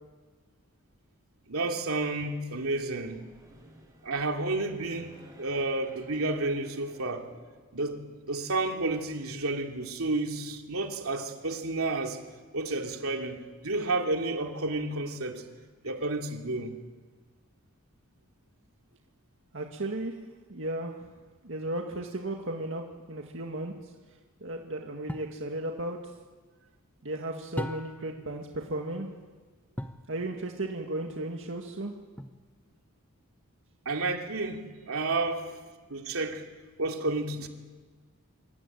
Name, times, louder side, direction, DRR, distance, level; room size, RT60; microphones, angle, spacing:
voice 1, 1.5-3.3 4.0-7.3 7.7-12.2 12.5-15.5 15.8-16.8 33.8-35.6 35.9-36.5 36.8-37.5, right 2 dB, 80° right, 2.8 m, -31 dB
sound 1, 2.5-7.8, right 1 dB, 15° right, 6.3 m, -55 dB
voice 2, 19.5-20.1 20.5-21.1 21.4-23.9 24.4-26.0 27.0-29.1 30.1-31.9, right 1 dB, 60° right, 2.1 m, -35 dB
sound 2, 25.1-25.4 27.6-28.2 29.8-30.1 32.2-32.7, equal, 10° left, 1.0 m, -37 dB
25.0 x 24.0 x 9.3 m
head